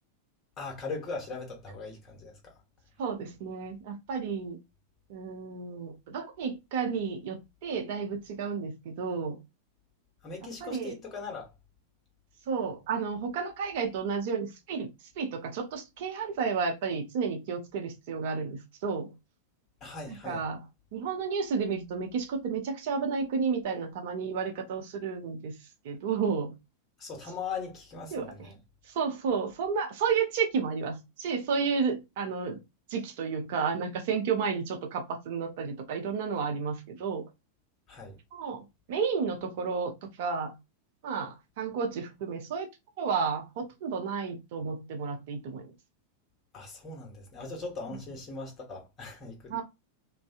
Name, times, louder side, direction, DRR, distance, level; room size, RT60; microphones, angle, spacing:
voice 1, 0.6-2.5 10.2-11.5 19.8-20.5 27.0-28.6 37.9-38.2 46.5-49.6, left 4 dB, 25° left, 1.0 m, -40 dB
voice 2, 3.0-4.6 5.1-9.4 10.6-10.9 12.5-14.9 15.2-19.1 20.1-20.6 20.9-25.5 25.8-26.5 28.1-28.3 29.0-32.6 32.9-37.3 38.3-38.6 38.9-39.9 40.2-40.5 41.0-42.7 43.0-45.6 49.5-49.6, right 5 dB, 50° right, 0.6 m, -31 dB
2.5 x 2.1 x 2.4 m
figure-of-eight pair, 90°, 0 cm